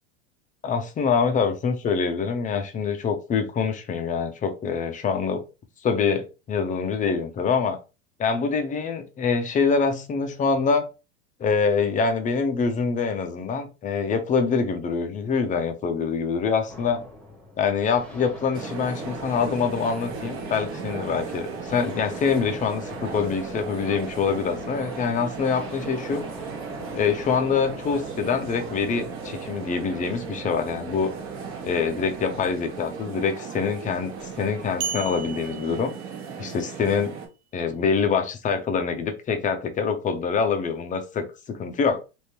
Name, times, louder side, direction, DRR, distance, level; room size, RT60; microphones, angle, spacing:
voice 1, 0.6-5.4 5.8-7.8 8.2-10.9 11.4-17.0 17.6-26.2 26.9-31.1 31.6-35.9 36.4-37.1 37.5-42.0, left 5 dB, 25° left, 7 dB, 0.6 m, -25 dB
sound 1, 16.7-34.7, left 1 dB, 5° left, 1.0 m, -42 dB
sound 2, 18.5-37.3, right 6 dB, 40° right, 1.0 m, -37 dB
sound 3, 34.8-36.6, right 7 dB, 85° right, 0.6 m, -34 dB
3.6 x 2.6 x 2.9 m, 0.30 s
hypercardioid pair, 110°, 32 cm